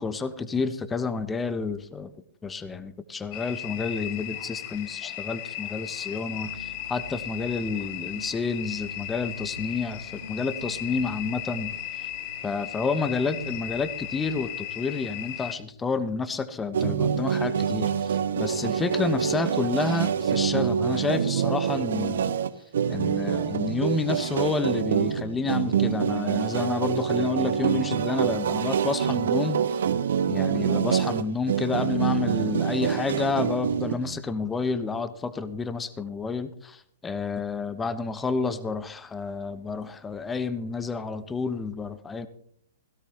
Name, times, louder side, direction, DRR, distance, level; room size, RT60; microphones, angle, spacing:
voice 1, 0.0-2.1 2.4-11.7 12.4-22.3 22.9-29.8 30.3-42.3, left 4 dB, 15° left, 13 dB, 1.0 m, -30 dB
sound 1, 3.3-15.6, left 12 dB, 40° left, 1.0 m, -36 dB
sound 2, 6.3-15.9, equal, 80° right, 1.3 m, -45 dB
sound 3, 16.7-34.2, right 7 dB, 60° right, 0.8 m, -26 dB
17.0 x 16.5 x 2.9 m, 0.64 s
figure-of-eight pair, 110°, 0 cm